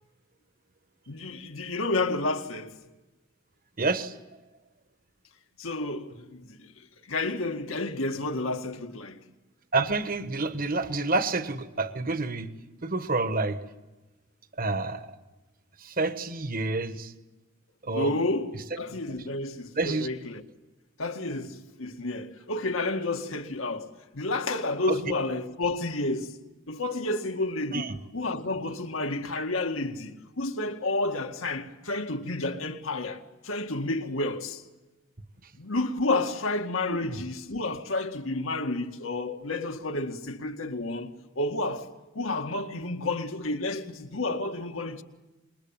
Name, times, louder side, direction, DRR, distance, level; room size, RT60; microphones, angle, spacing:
voice 1, 1.1-2.8 5.6-9.2 17.9-20.4 21.0-26.4 26.7-34.6 35.6-41.9 42.1-45.0, left 2 dB, 75° left, 1.9 m, -31 dB
voice 2, 3.8-4.1 9.7-12.5 12.8-13.6 14.6-15.1 15.8-17.1 17.8-18.1 19.8-20.1 24.9-25.1 27.7-28.0 37.0-37.2, right 3 dB, 45° right, 1.3 m, -28 dB
26.5 x 22.0 x 8.9 m
head